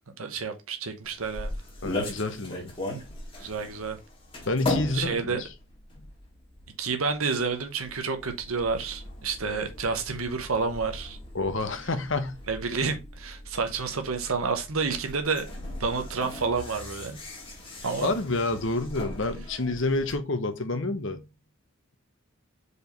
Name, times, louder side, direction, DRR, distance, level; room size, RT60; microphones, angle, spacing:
voice 1, 0.2-1.5 3.4-4.0 4.9-5.4 6.8-11.2 12.5-15.5 15.8-17.2 17.8-18.2, right 4 dB, 85° right, 1.1 m, -29 dB
sound 1, 1.0-20.1, left 1 dB, 25° left, 2.0 m, -39 dB
voice 2, 1.8-2.7 4.4-5.5 11.3-12.3 18.0-21.2, left 2 dB, 65° left, 1.1 m, -28 dB
5.0 x 4.9 x 5.3 m
head